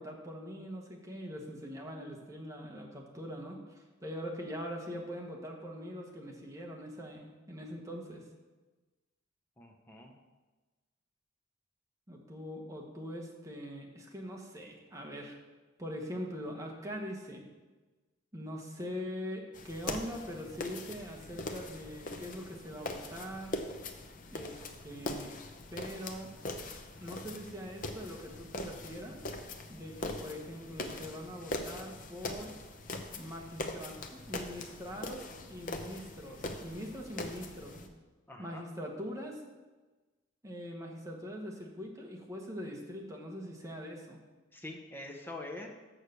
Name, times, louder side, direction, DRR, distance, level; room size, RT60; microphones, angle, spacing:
voice 1, 0.0-8.2 12.1-15.4 15.8-17.4 18.3-23.5 24.3-25.3 25.7-26.3 27.0-29.2 29.7-32.5 33.2-37.9 38.4-39.4 40.4-44.2, equal, 15° right, 0 dB, 1.2 m, -42 dB
voice 2, 9.6-10.1 38.3-38.6 44.5-45.7, left 2 dB, 10° left, 1 dB, 0.8 m, -44 dB
sound 1, 19.5-37.9, left 2 dB, 45° left, 0.7 m, -42 dB
6.4 x 6.4 x 6.8 m, 1.2 s
head